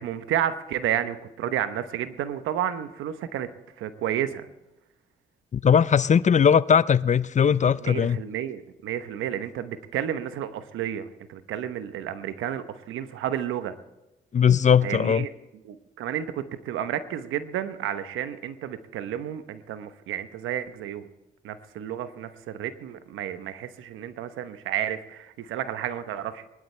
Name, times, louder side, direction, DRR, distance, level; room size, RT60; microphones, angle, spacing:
voice 1, 0.0-3.5 3.8-4.5 7.8-13.7 14.8-15.3 15.6-21.1 21.4-26.4, right 10 dB, 80° right, 1.0 m, -31 dB
voice 2, 5.5-8.2 14.3-15.3, left 7 dB, 35° left, 0.5 m, -19 dB
21.5 x 12.0 x 3.3 m
supercardioid pair, 55°, 20 cm